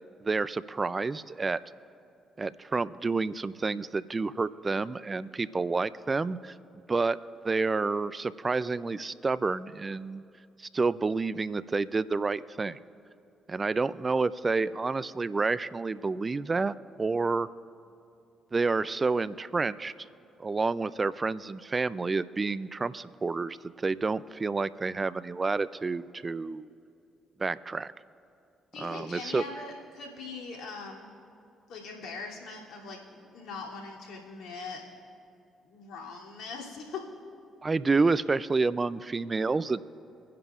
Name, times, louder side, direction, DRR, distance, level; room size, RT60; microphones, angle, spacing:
voice 1, 0.2-1.6 2.4-6.5 6.9-7.2 7.4-10.2 10.6-12.8 13.5-17.5 18.5-20.1 20.4-26.7 27.4-27.9 28.8-29.4 37.6-39.8, right 4 dB, 35° right, 17 dB, 0.4 m, -29 dB
voice 2, 28.7-31.1 31.7-34.8 35.6-37.0, left 4 dB, 70° left, -3 dB, 2.8 m, -41 dB
24.0 x 10.5 x 2.4 m, 2.5 s
hypercardioid pair, 50°, 0 cm